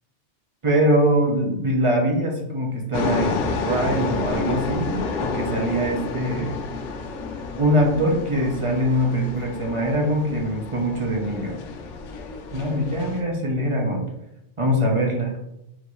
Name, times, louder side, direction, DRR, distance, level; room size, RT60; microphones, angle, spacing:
voice 1, 0.6-6.6 7.6-11.6 12.5-14.0 14.6-15.3, equal, 30° right, 0 dB, 0.7 m, -23 dB
sound 1, 2.9-13.2, left 4 dB, 85° left, 0.9 m, -30 dB
5.8 x 2.6 x 3.1 m, 0.86 s
omnidirectional pair, 1.2 m